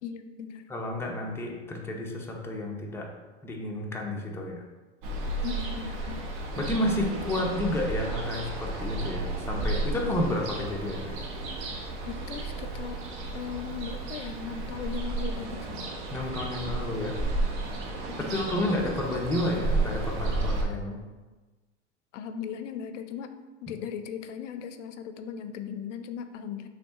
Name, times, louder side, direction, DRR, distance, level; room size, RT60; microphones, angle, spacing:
voice 1, 0.0-0.7 5.4-6.3 12.0-13.1 13.3-15.9 18.1-18.4 22.1-23.3 23.6-26.7, left 8 dB, 85° left, 9 dB, 0.5 m, -38 dB
voice 2, 0.7-3.1 3.4-4.6 6.6-11.2 16.1-17.2 18.2-21.0, left 1 dB, 5° left, -1 dB, 0.6 m, -31 dB
Ocean, 5.0-20.6, right 2 dB, 55° right, 1.0 m, -32 dB
5.8 x 3.2 x 2.5 m, 1.2 s
hypercardioid pair, 100°, 36 cm